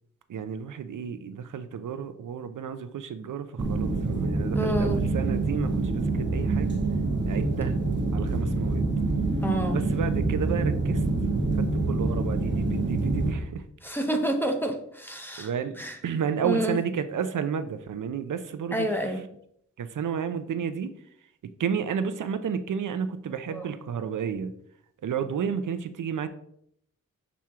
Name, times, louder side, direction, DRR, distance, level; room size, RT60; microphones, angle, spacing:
voice 1, 0.3-6.8 7.3-7.8 8.1-8.9 9.7-11.0 11.7-13.6 15.4-15.7 16.0-18.9 19.8-20.9 21.6-24.5 25.0-26.3, right 7 dB, 75° right, 11 dB, 0.5 m, -31 dB
sound 1, 3.6-13.3, right 3 dB, 35° right, 0.9 m, -26 dB
voice 2, 4.5-5.0 9.4-9.8 13.8-15.5 15.8-16.0 16.4-16.8 18.7-19.2 23.5-23.7, equal, 5° left, 3 dB, 0.6 m, -28 dB
6.1 x 4.4 x 3.5 m, 0.71 s
wide cardioid pair, 170°, 32 cm